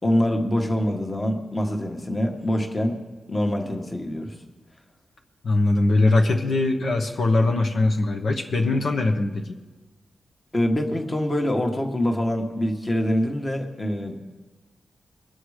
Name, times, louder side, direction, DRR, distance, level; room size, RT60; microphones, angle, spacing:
voice 1, 0.0-3.0 3.3-4.3 10.5-14.2, equal, 20° left, 4 dB, 1.4 m, -25 dB
voice 2, 5.4-9.6, left 2 dB, 60° left, 1 dB, 1.1 m, -21 dB
22.5 x 7.9 x 4.9 m, 1.2 s
wide cardioid pair, 145°, 0 cm